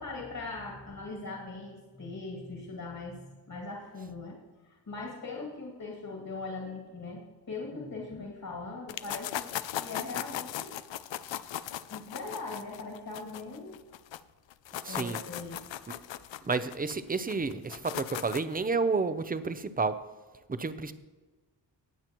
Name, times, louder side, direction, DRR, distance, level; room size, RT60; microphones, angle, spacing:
voice 1, 0.0-9.5 9.8-10.7 11.9-13.8 14.9-15.7, left 3 dB, 50° left, -1 dB, 2.2 m, -40 dB
sound 1, 8.9-14.2 14.5-18.6, left 12 dB, 85° left, 0.5 m, -38 dB
voice 2, 14.8-15.2 16.4-20.0 20.5-20.9, right 4 dB, 20° right, 12 dB, 0.5 m, -30 dB
19.0 x 7.4 x 3.0 m, 1.3 s
wide cardioid pair, 135°, 44 cm